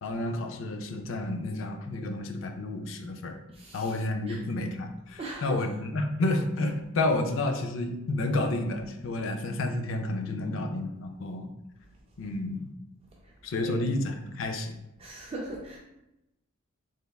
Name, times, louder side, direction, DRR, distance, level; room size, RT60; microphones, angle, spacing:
voice 1, 0.0-3.4 3.7-11.5 12.2-12.7 13.4-14.8, left 2 dB, 60° left, 6 dB, 0.4 m, -30 dB
voice 2, 3.5-3.9 4.3-4.4 5.2-5.6 13.6-13.9 15.0-15.8, right 2 dB, 25° right, -2 dB, 0.3 m, -39 dB
3.3 x 3.3 x 2.3 m, 0.90 s
head